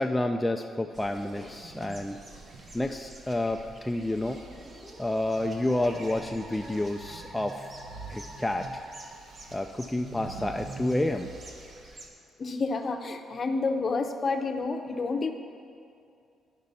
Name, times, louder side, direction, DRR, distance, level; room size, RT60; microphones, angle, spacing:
voice 1, 0.0-2.2 2.7-4.4 5.0-7.7 8.1-8.8 9.5-11.3, left 1 dB, 10° left, 4 dB, 0.3 m, -29 dB
sound 1, 0.9-12.1, right 2 dB, 40° right, 1.0 m, -51 dB
Chair Heavy Sliding, 1.5-3.8 4.1-12.0, right 3 dB, 65° right, 0.9 m, -46 dB
Musical instrument, 3.9-9.1, right 1 dB, 20° right, 1.6 m, -48 dB
voice 2, 12.4-15.3, left 3 dB, 40° left, 5 dB, 0.7 m, -29 dB
11.5 x 5.3 x 4.1 m, 2.4 s
cardioid pair, 90°, 0 cm